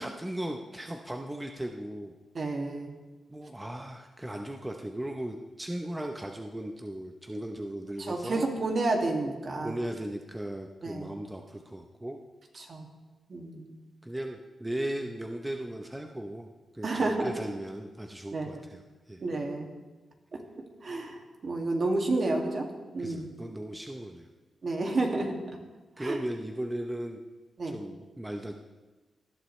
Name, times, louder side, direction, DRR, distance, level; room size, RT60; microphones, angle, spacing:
voice 1, 0.0-2.1 3.3-8.5 9.6-12.2 14.0-16.5 16.7-19.2 23.0-24.3 26.0-27.2 27.7-28.5, right 1 dB, 10° right, 3 dB, 0.8 m, -37 dB
voice 2, 2.3-2.9 8.0-9.8 10.8-11.1 12.6-12.8 13.3-13.8 16.8-17.3 18.3-18.6 19.2-19.7 20.3-20.4 20.8-22.7 22.9-23.3 24.6-25.4 26.0-26.2 27.6-27.7, right 2 dB, 50° right, 1 dB, 2.2 m, -30 dB
18.5 x 11.0 x 3.3 m, 1.2 s
cardioid pair, 95°, 0 cm